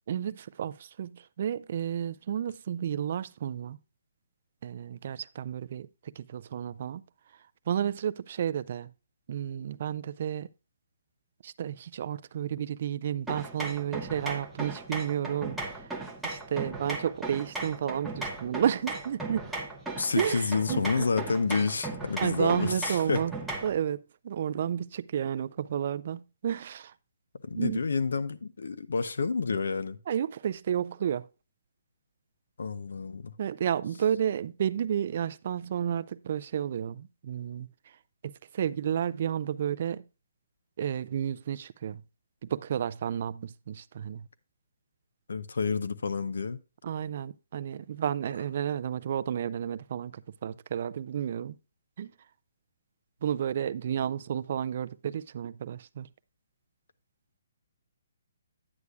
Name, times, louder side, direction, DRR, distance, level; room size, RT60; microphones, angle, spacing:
voice 1, 0.1-3.8 4.6-7.0 7.7-8.9 9.3-10.5 11.4-15.9 16.2-19.5 20.2-21.1 22.2-23.3 23.6-26.9 27.5-27.8 30.1-31.3 33.4-37.7 38.5-40.0 40.8-42.0 42.4-44.3 46.8-51.6 52.0-52.1 53.2-56.1, right 9 dB, 40° right, 0.3 m, -31 dB
sound 1, 13.3-23.8, right 2 dB, 5° right, 0.7 m, -37 dB
voice 2, 20.0-23.2 27.4-30.0 32.6-33.3 45.3-46.6, left 4 dB, 80° left, 0.7 m, -29 dB
9.6 x 8.2 x 2.3 m
hypercardioid pair, 175°, 0 cm